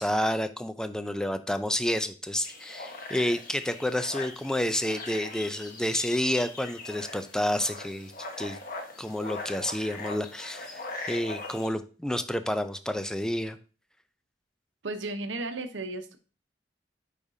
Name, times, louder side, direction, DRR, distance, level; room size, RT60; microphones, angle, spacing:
voice 1, 0.0-8.1 8.4-8.6 9.0-13.6, left 1 dB, 5° left, 10 dB, 0.4 m, -29 dB
sound 1, 2.4-11.7, left 3 dB, 50° left, 1.2 m, -41 dB
voice 2, 14.8-16.2, right 2 dB, 80° right, 8 dB, 0.9 m, -34 dB
8.6 x 5.0 x 2.7 m, 0.36 s
head